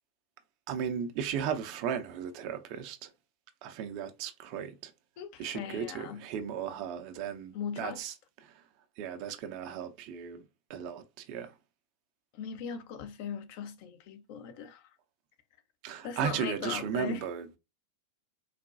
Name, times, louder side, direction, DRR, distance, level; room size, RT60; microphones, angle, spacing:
voice 1, 0.7-3.1 3.6-4.9 5.4-8.1 8.4-8.5 9.0-10.4 10.7-11.5 15.8-17.6, right 8 dB, 45° right, 0.6 m, -35 dB
voice 2, 5.2-6.3 7.5-8.0 12.3-14.9 16.0-17.2, left 8 dB, 45° left, 0.6 m, -39 dB
4.0 x 2.2 x 2.6 m
figure-of-eight pair, 90°, 0 cm